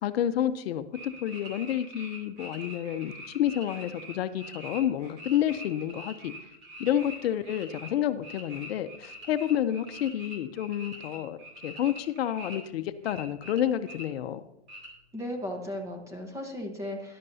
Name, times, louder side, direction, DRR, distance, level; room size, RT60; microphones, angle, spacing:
voice 1, 0.0-6.3 6.8-14.4, left 11 dB, 60° left, 11 dB, 0.7 m, -29 dB
sound 1, 0.9-7.9 8.2-12.6 13.0-14.0 14.7-14.9, equal, 30° right, 2.9 m, -44 dB
voice 2, 15.1-17.2, left 1 dB, 10° right, 3 dB, 1.1 m, -36 dB
13.0 x 11.0 x 2.7 m, 0.88 s
hypercardioid pair, 150°, 34 cm